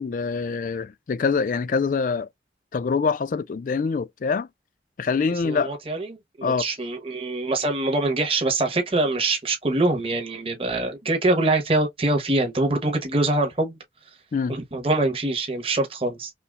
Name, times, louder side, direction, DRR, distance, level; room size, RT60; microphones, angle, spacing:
voice 1, 0.0-2.3 2.7-4.5 5.0-5.8 6.4-6.6 14.3-14.6, left 5 dB, 45° left, 0.3 m, -25 dB
voice 2, 5.4-13.8 14.5-16.3, right 2 dB, 30° right, 1.1 m, -24 dB
5.6 x 2.1 x 2.4 m
head